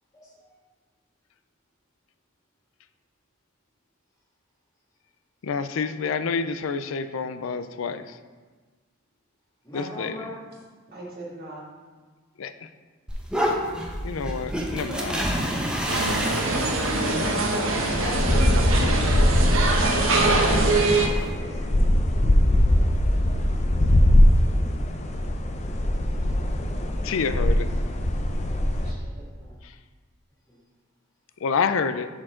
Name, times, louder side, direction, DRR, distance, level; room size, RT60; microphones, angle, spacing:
voice 1, 5.4-8.2 9.7-10.3 12.4-12.7 14.0-15.3 27.0-27.7 29.6-29.8 31.4-32.1, left 5 dB, 75° left, 11 dB, 0.4 m, -28 dB
voice 2, 9.6-10.5 16.8-20.5 21.4-21.7 22.0-22.3 24.4-24.7 30.5-30.6, equal, 15° left, -6 dB, 2.0 m, -39 dB
voice 3, 10.9-11.6 14.8-15.7 28.8-29.5, right 1 dB, 50° right, -5 dB, 1.9 m, -39 dB
sound 1, 13.1-21.3, equal, 5° right, 0.8 m, -31 dB
sound 2, 15.9-21.1, right 2 dB, 75° right, 1.0 m, -23 dB
sound 3, 17.8-28.9, left 1 dB, 35° left, 0.6 m, -21 dB
10.5 x 4.6 x 3.7 m, 1.4 s
head